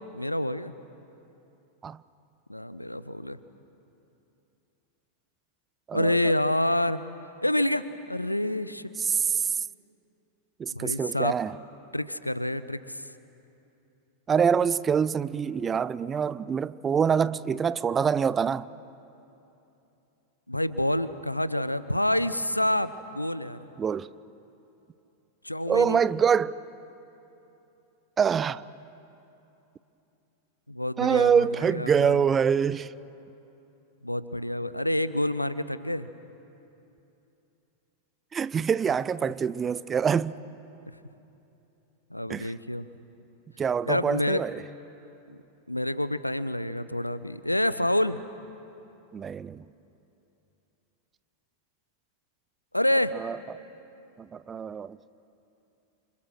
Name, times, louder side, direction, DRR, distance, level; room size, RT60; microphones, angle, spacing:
voice 1, 0.1-0.7 2.5-3.4 5.9-7.0 7.4-8.9 10.7-11.3 11.9-13.0 20.5-23.6 25.4-26.0 30.7-32.2 34.0-36.1 42.1-42.8 43.9-44.4 45.3-45.4 45.7-48.2 52.7-53.2, left 1 dB, 85° left, 0.8 m, -27 dB
voice 2, 9.0-9.6 10.6-11.6 14.3-18.7 23.8-24.1 25.7-26.6 28.2-28.6 31.0-32.9 38.3-40.4 42.3-42.5 43.6-44.6 49.1-49.6 53.1-53.6 54.2-55.0, right 7 dB, 20° right, 0.5 m, -25 dB
29.5 x 26.0 x 6.4 m
figure-of-eight pair, 90°, 0 cm